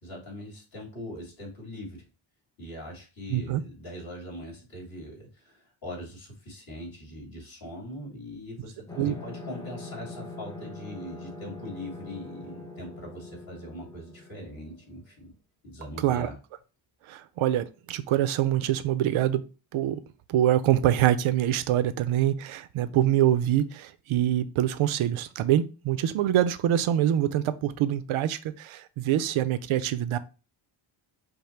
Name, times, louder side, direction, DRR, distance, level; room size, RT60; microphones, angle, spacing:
voice 1, 0.0-2.1 2.6-15.3 15.6-16.3, left 1 dB, 45° left, -1 dB, 2.6 m, -41 dB
voice 2, 3.3-3.6 9.0-9.2 16.0-16.3 17.1-19.4 19.7-20.0 20.3-30.2, right 11 dB, 85° right, 13 dB, 0.6 m, -25 dB
sound 1, 8.9-15.2, left 2 dB, 10° left, 0.6 m, -43 dB
5.3 x 2.1 x 4.4 m, 0.33 s
wide cardioid pair, 145°, 47 cm